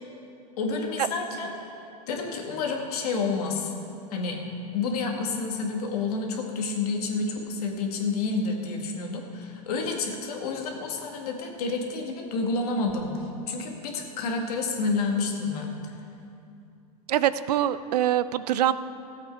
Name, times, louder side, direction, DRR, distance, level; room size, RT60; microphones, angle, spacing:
voice 1, 0.6-1.5 2.1-3.7 4.1-4.4 4.7-15.7, left 4 dB, 75° left, 1 dB, 1.9 m, -29 dB
voice 2, 17.1-18.7, right 11 dB, 85° right, 14 dB, 0.5 m, -24 dB
15.5 x 8.1 x 4.6 m, 2.6 s
hypercardioid pair, 110°, 20 cm